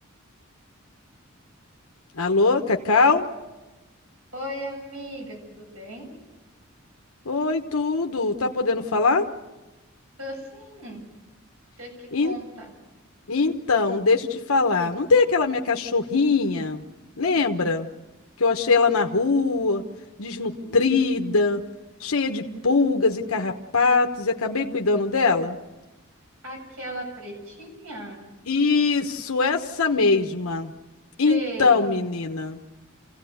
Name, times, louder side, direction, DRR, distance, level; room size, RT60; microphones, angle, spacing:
voice 1, 2.2-3.2 7.2-9.3 12.1-12.3 13.3-16.8 17.2-17.9 18.4-19.8 20.2-21.6 22.0-25.6 28.5-30.7 31.2-32.6, left 4 dB, 85° left, 3 dB, 1.2 m, -22 dB
voice 2, 4.3-6.2 10.2-11.0 11.8-12.7 20.6-21.0 26.4-28.3 31.2-31.9, equal, 80° right, 1 dB, 7.8 m, -37 dB
28.0 x 16.5 x 8.0 m, 1.1 s
head